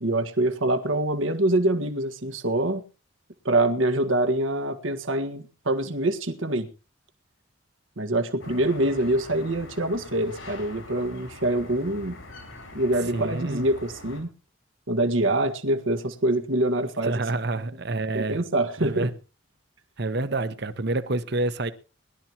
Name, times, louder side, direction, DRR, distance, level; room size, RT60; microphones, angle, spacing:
voice 1, 0.0-2.8 3.4-6.7 8.0-12.2 12.7-14.3 14.9-17.2 18.1-19.1, right 1 dB, 80° right, 1.6 m, -25 dB
sound 1, 8.4-14.2, left 2 dB, 90° left, 5.6 m, -43 dB
voice 2, 13.1-13.7 17.0-18.4 18.8-19.1 20.0-21.7, right 2 dB, 55° right, 1.1 m, -28 dB
21.5 x 12.0 x 3.0 m
head